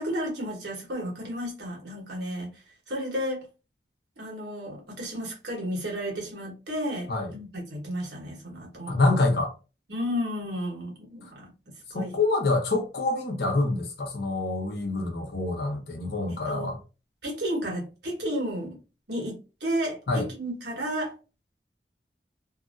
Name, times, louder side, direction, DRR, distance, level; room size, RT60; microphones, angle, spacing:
voice 1, 0.0-2.5 2.9-3.4 4.2-9.0 9.9-11.5 11.9-12.2 16.3-16.7 17.2-18.8 19.1-21.1, equal, 75° right, 1.3 m, -32 dB
voice 2, 8.9-9.5 11.9-16.8 20.1-20.3, left 2 dB, 65° left, 0.8 m, -26 dB
2.8 x 2.6 x 2.5 m
head